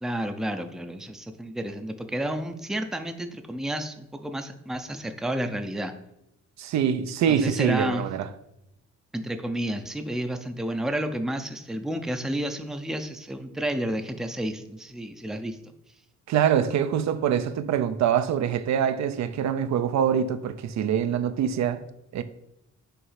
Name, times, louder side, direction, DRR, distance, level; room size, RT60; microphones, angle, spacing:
voice 1, 0.0-5.9 7.3-8.1 9.1-15.6, right 1 dB, ahead, 0.5 m, -31 dB
voice 2, 6.6-8.3 16.3-21.8 22.1-22.2, right 8 dB, 65° right, 0.5 m, -24 dB
5.7 x 3.2 x 5.7 m
cardioid pair, 90°, 30 cm